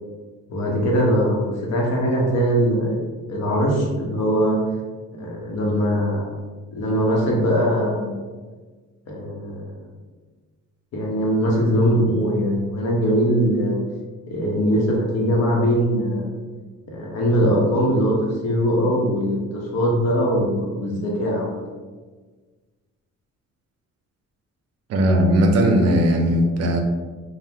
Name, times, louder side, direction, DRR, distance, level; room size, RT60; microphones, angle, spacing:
voice 1, 0.5-1.4 1.7-4.6 5.2-6.3 6.7-8.2 9.1-9.7 10.9-13.8 14.3-16.4 16.9-18.2 18.4-21.6, equal, 60° left, -2 dB, 0.8 m, -21 dB
voice 2, 24.9-26.8, equal, 60° right, 3 dB, 0.4 m, -18 dB
2.8 x 2.0 x 3.4 m, 1.4 s
cardioid pair, 165°, 29 cm